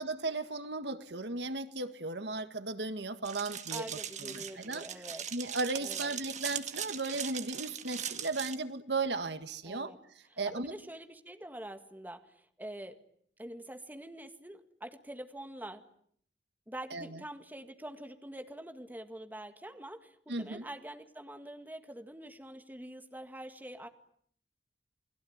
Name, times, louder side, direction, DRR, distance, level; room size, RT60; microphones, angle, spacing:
voice 1, 0.0-3.8 4.2-4.9 5.3-9.9 10.4-10.7 16.9-17.2 20.3-20.7, right 3 dB, 70° right, 10 dB, 1.8 m, -36 dB
sound 1, 3.2-8.5, right 9 dB, 40° right, 1.8 m, -40 dB
voice 2, 3.7-5.3 5.8-6.1 9.6-10.0 10.3-13.0 13.4-15.9 16.7-23.9, right 1 dB, 10° right, 7 dB, 1.9 m, -45 dB
29.5 x 21.0 x 9.6 m, 0.66 s
head